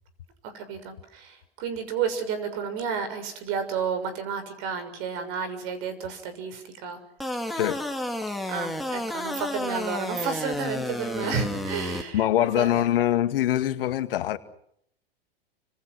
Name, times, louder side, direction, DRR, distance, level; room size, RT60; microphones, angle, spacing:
voice 1, 0.4-7.0 8.5-12.8, right 6 dB, 45° right, 6.8 m, -31 dB
sound 1, 7.2-12.0, left 1 dB, ahead, 2.8 m, -31 dB
voice 2, 7.5-7.9 12.1-14.4, left 12 dB, 65° left, 2.2 m, -23 dB
30.0 x 26.5 x 6.3 m
hypercardioid pair, 110°, 30 cm